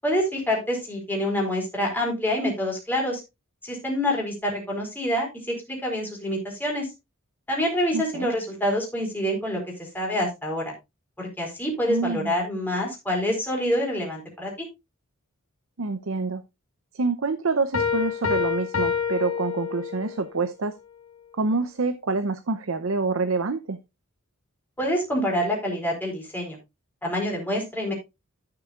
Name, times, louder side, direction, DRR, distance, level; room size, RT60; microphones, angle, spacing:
voice 1, 0.0-3.2 3.6-6.9 7.5-10.7 11.2-14.7 24.8-26.6 27.0-27.9, equal, 10° left, -1 dB, 4.3 m, -26 dB
voice 2, 7.9-8.3 11.9-12.3 15.8-16.4 16.9-20.8 21.3-23.8, right 3 dB, 70° right, 10 dB, 0.7 m, -27 dB
Piano, 17.7-20.2, left 6 dB, 75° left, 1.8 m, -27 dB
13.5 x 6.9 x 2.4 m, 0.23 s
head